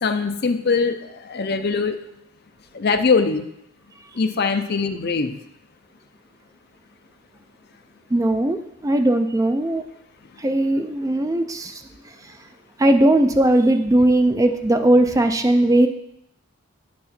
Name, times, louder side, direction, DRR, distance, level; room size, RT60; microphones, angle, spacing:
voice 1, 0.0-0.9 1.2-2.0 2.7-3.5 4.2-5.4, left 4 dB, 50° left, 8 dB, 0.6 m, -21 dB
voice 2, 8.1-9.8 10.4-11.8 12.8-15.9, right 1 dB, 15° right, 7 dB, 0.3 m, -18 dB
8.7 x 6.3 x 4.3 m, 0.80 s
head